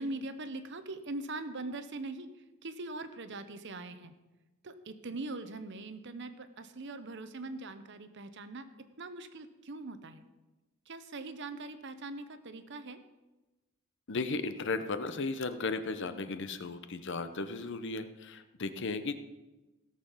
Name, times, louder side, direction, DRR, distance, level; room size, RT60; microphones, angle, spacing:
voice 1, 0.0-2.3 2.6-4.1 4.6-8.7 9.0-10.2 10.9-13.0, right 2 dB, 55° right, 10 dB, 0.9 m, -41 dB
voice 2, 14.1-19.1, left 3 dB, 55° left, 10 dB, 0.8 m, -35 dB
17.0 x 6.7 x 5.7 m, 1.1 s
head